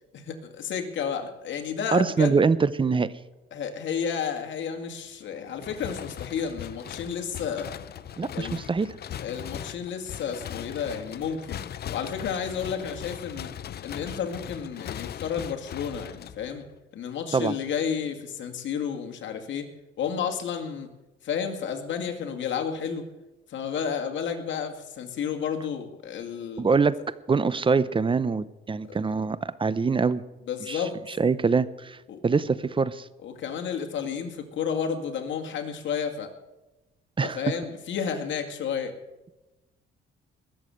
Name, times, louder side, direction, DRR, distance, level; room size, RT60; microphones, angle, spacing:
voice 1, 0.1-2.4 3.5-7.7 8.3-8.6 9.2-11.6 11.9-13.5 13.8-16.6 16.9-19.7 20.0-20.9 21.2-23.1 23.5-26.7 28.9-29.0 30.5-31.0 32.1-32.2 33.2-36.3 37.2-38.9, left 7 dB, 70° left, 4 dB, 2.2 m, -31 dB
voice 2, 1.9-3.1 8.2-8.9 17.3-17.5 26.6-27.0 27.3-30.2 30.7-30.8 31.1-32.0 32.2-33.1 37.2-37.4, right 4 dB, 25° right, 17 dB, 0.7 m, -24 dB
sound 1, 5.6-16.8, left 10 dB, 55° left, 0.6 m, -39 dB
20.5 x 7.2 x 7.8 m, 1.0 s
cardioid pair, 90°, 20 cm